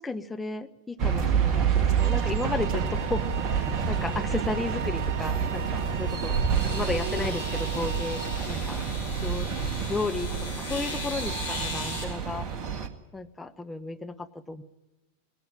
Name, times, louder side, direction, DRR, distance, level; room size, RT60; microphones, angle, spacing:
voice 1, 0.0-6.4 6.7-8.8 9.2-9.5 9.8-12.5 13.1-14.6, left 3 dB, 10° left, 7 dB, 1.0 m, -34 dB
sound 1, 1.0-12.9, right 6 dB, 35° right, 1.7 m, -28 dB
sound 2, 2.0-8.4, right 8 dB, 50° right, 4.5 m, -40 dB
sound 3, 6.5-12.0, left 3 dB, 70° left, 6.5 m, -39 dB
19.0 x 16.0 x 9.9 m, 1.1 s
figure-of-eight pair, 90°, 0 cm